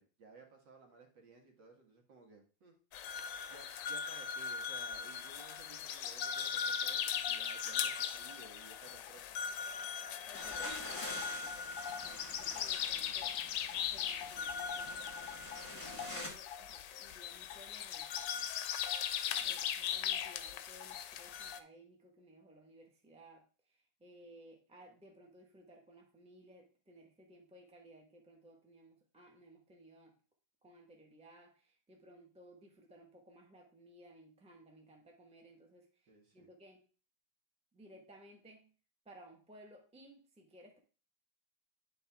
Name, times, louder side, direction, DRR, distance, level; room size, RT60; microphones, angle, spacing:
voice 1, 0.0-2.8 3.5-9.2 19.2-19.6 36.1-36.5, right 3 dB, 70° right, 2 dB, 2.1 m, -58 dB
sound 1, 2.9-21.6, left 8 dB, 75° left, 1.1 m, -39 dB
sound 2, 10.3-16.3, left 1 dB, 15° left, 1.7 m, -47 dB
voice 2, 10.3-11.7 12.0-13.4 13.7-15.3 15.7-18.5 19.4-30.2 30.6-36.8 37.7-38.7 39.0-40.8, right 1 dB, 5° right, 1 dB, 1.1 m, -59 dB
9.9 x 4.3 x 3.5 m, 0.38 s
omnidirectional pair, 2.0 m